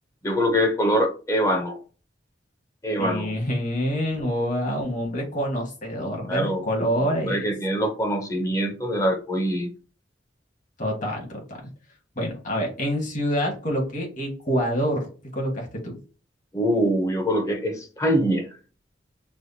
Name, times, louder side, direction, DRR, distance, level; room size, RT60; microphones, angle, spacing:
voice 1, 0.2-1.8 2.8-3.3 6.3-6.6 7.0-9.7 16.5-18.5, equal, 20° left, 4 dB, 0.7 m, -24 dB
voice 2, 3.0-7.4 10.8-11.6 12.1-16.0, equal, 45° left, 0 dB, 1.5 m, -27 dB
6.1 x 2.2 x 2.7 m, 0.36 s
head